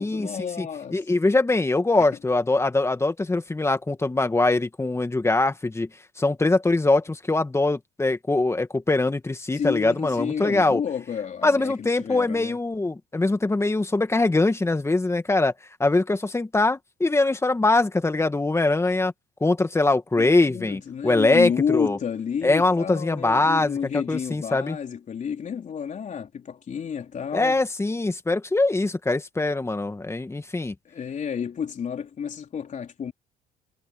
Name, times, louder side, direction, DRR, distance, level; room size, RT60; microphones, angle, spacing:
voice 1, 0.0-1.1 9.5-12.6 20.2-27.6 30.8-33.1, left 7 dB, 45° left, 4.0 m, -30 dB
voice 2, 0.9-5.9 6.2-10.8 11.4-15.5 15.8-19.1 19.4-22.0 22.4-23.8 24.1-24.8 27.3-30.7, left 2 dB, 15° left, 2.2 m, -22 dB
supercardioid pair, 85°, 18 cm